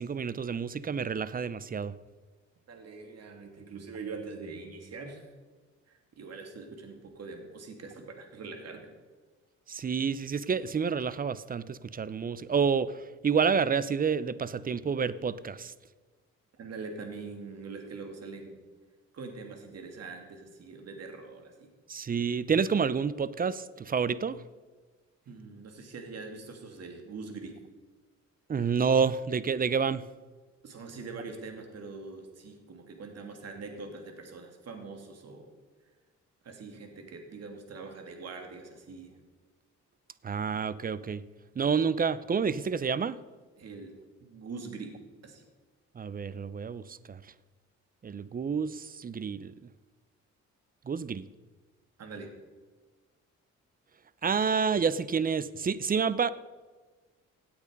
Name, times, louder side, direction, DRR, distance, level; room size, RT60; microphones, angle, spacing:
voice 1, 0.0-1.9 9.7-13.0 13.2-15.7 21.9-24.4 28.5-30.0 40.2-41.2 41.6-43.2 46.0-47.2 48.0-49.5 50.9-51.3 54.2-56.3, right 6 dB, 30° right, 17 dB, 0.6 m, -29 dB
voice 2, 2.7-5.3 6.2-8.9 16.6-18.5 19.1-21.7 25.3-27.6 30.6-35.5 36.4-39.1 43.6-43.9 44.2-45.0 45.2-45.4 52.0-52.3, right 4 dB, 55° right, 4 dB, 2.9 m, -43 dB
17.0 x 8.8 x 5.4 m, 1.4 s
cardioid pair, 90°, 30 cm